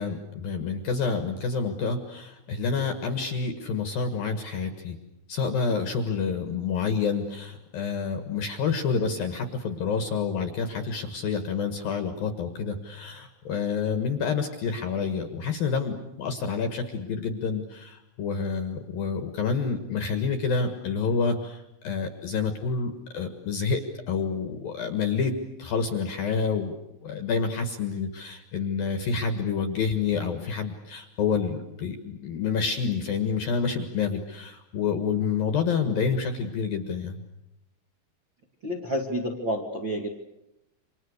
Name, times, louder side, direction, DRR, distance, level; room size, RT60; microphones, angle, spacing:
voice 1, 0.0-5.0 5.3-25.3 25.6-26.7 27.0-37.2, left 5 dB, 60° left, 7 dB, 2.7 m, -28 dB
voice 2, 38.6-40.1, equal, 40° right, 0 dB, 1.8 m, -29 dB
29.0 x 26.5 x 6.6 m, 0.88 s
omnidirectional pair, 6.0 m